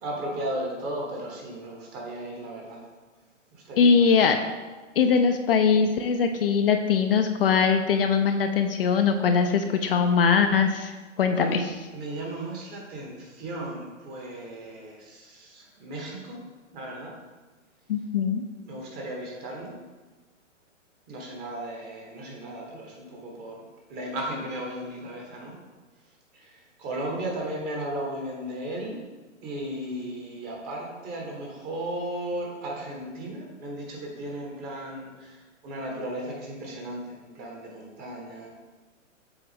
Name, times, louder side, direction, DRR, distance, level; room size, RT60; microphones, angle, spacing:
voice 1, 0.0-2.9 3.5-4.3 11.3-16.4 16.7-17.1 18.6-19.7 21.1-25.6 26.3-29.0 29.4-38.5, right 1 dB, 25° right, -1 dB, 1.3 m, -35 dB
voice 2, 3.8-4.4 5.0-11.6 17.9-18.4, left 6 dB, 50° left, 6 dB, 0.5 m, -21 dB
7.0 x 3.9 x 3.5 m, 1.3 s
hypercardioid pair, 135°, 38 cm